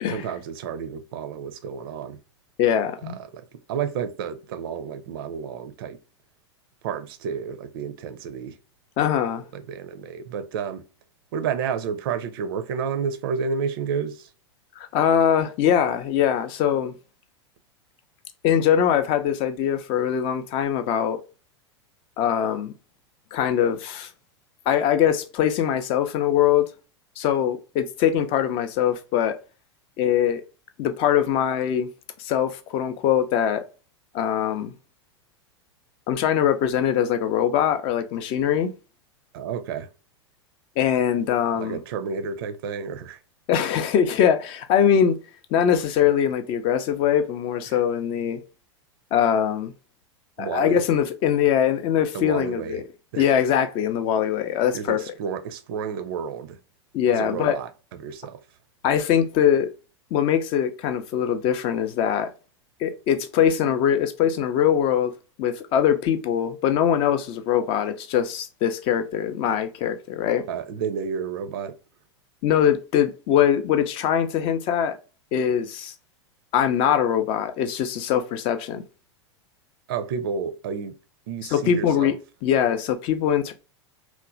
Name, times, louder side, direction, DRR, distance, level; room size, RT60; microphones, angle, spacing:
voice 1, 0.1-2.2 3.0-6.0 6.8-8.6 9.5-10.8 11.3-14.3 39.3-39.9 41.5-43.2 50.4-50.9 52.1-52.8 53.1-53.3 54.7-56.6 57.1-58.4 70.5-71.8 79.9-81.0 81.3-82.2, right 6 dB, 55° right, 0.4 m, -31 dB
voice 2, 2.6-3.2 9.0-9.4 14.8-16.9 18.4-21.2 22.2-22.7 23.3-24.1 24.7-26.7 27.2-29.4 30.0-30.4 30.8-31.9 32.2-33.6 34.1-34.7 36.1-38.7 40.8-41.8 43.5-45.2 45.5-48.4 49.1-49.7 50.4-52.8 53.2-55.0 56.9-57.6 58.8-59.7 60.1-62.3 62.8-65.1 65.4-70.4 72.4-75.0 75.3-75.9 76.5-78.8 81.5-82.1 82.4-83.5, left 9 dB, 40° left, 0.4 m, -22 dB
2.9 x 2.1 x 2.4 m
figure-of-eight pair, 90°, 15 cm